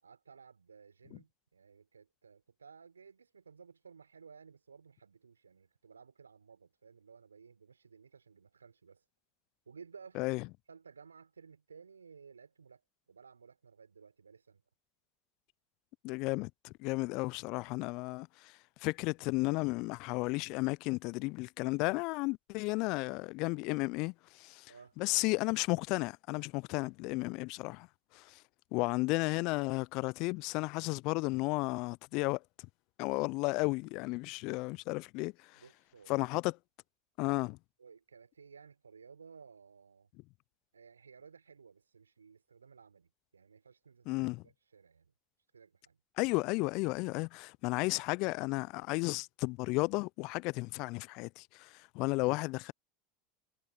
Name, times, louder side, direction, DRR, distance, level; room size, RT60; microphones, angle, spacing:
voice 1, 0.0-9.0 9.6-10.2 10.7-14.6 24.7-25.0 35.6-36.3 37.2-37.4 37.8-40.1 40.7-44.1 44.4-45.1 45.5-46.0, right 5 dB, 85° right, 5.1 m, -57 dB
voice 2, 16.0-24.7 25.0-27.9 28.1-28.4 28.7-32.4 33.0-35.6 36.1-36.6 37.2-37.6 44.1-44.4 46.2-52.7, left 25 dB, 55° left, 0.5 m, -33 dB
figure-of-eight pair, 80°, 0 cm